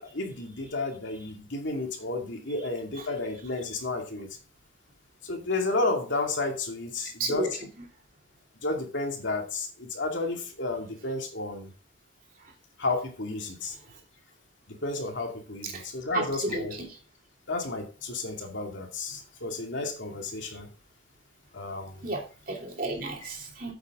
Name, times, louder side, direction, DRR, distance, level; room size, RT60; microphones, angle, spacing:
voice 1, 0.0-4.4 5.2-7.5 8.6-11.7 12.8-13.8 14.7-16.7 17.5-20.7 21.5-22.0, left 2 dB, 75° left, 2 dB, 2.3 m, -32 dB
voice 2, 7.0-7.8 12.3-12.5 13.7-14.0 15.6-16.9 19.1-19.2 20.4-20.6 22.0-23.7, right 2 dB, 45° right, 0 dB, 2.9 m, -34 dB
8.7 x 7.4 x 3.7 m, 0.35 s
head